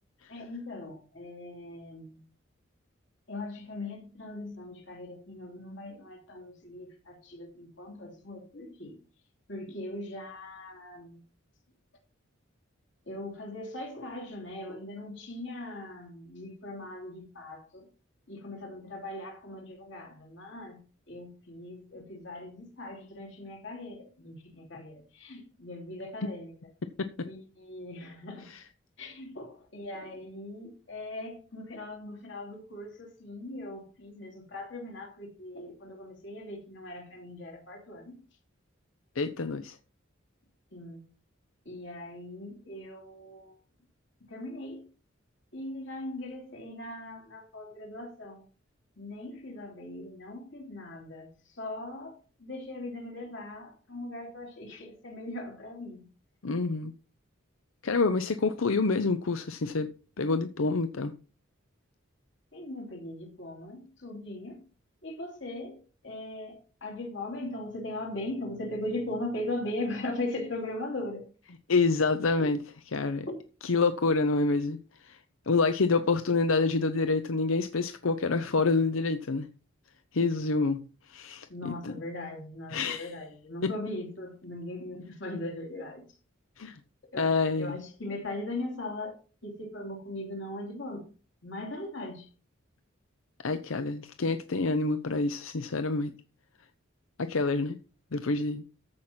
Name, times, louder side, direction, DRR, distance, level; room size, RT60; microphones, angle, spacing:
voice 1, 0.3-2.2 3.3-9.0 9.5-11.2 13.1-17.9 18.3-20.8 21.1-26.5 27.2-28.5 29.0-38.2 40.7-41.1 41.6-43.5 44.3-44.9 45.5-48.4 49.0-56.1 62.5-64.7 65.0-71.2 72.4-72.5 73.2-73.4 81.5-86.1 87.1-87.3 87.6-91.0 91.4-92.3, left 1 dB, 65° left, 2.9 m, -39 dB
voice 2, 39.2-39.8 56.4-56.9 57.8-59.9 60.2-61.1 71.7-73.3 73.6-75.2 75.5-79.5 80.1-80.8 81.1-81.9 82.7-83.1 86.6-86.8 87.2-87.8 93.4-96.1 97.2-97.8 98.1-98.6, left 3 dB, 85° left, 0.7 m, -27 dB
14.0 x 5.8 x 4.4 m
head